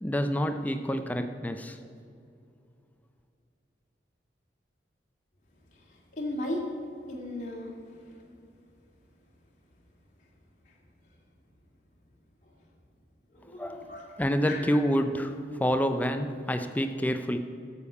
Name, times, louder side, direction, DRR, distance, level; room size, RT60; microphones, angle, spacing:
voice 1, 0.0-1.8 13.6-13.9 14.2-17.4, equal, 10° left, 8 dB, 0.4 m, -28 dB
voice 2, 5.7-6.8 7.1-7.8 8.1-8.2 10.7-10.8 12.4-12.5 13.3-14.2 14.5-14.8 16.6-16.7 16.9-17.1, left 1 dB, 45° left, -2 dB, 2.2 m, -37 dB
11.5 x 7.1 x 8.2 m, 2.5 s
head